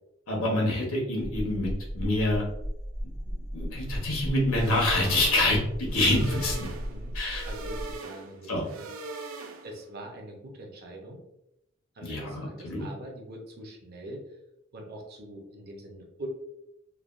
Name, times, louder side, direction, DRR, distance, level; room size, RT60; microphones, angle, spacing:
voice 1, 0.3-2.4 3.5-6.5 7.1-7.5 8.5-8.6 12.0-12.9, left 1 dB, 80° left, -2 dB, 1.0 m, -26 dB
sound 1, 1.2-8.0, equal, ahead, 0.3 m, -36 dB
sound 2, 4.5-9.9, right 3 dB, 80° right, 0.4 m, -41 dB
voice 2, 6.3-9.3 9.6-11.2 11.9-14.2 14.7-16.3, right 1 dB, 50° right, 0 dB, 0.7 m, -43 dB
3.2 x 2.2 x 2.4 m, 0.83 s
head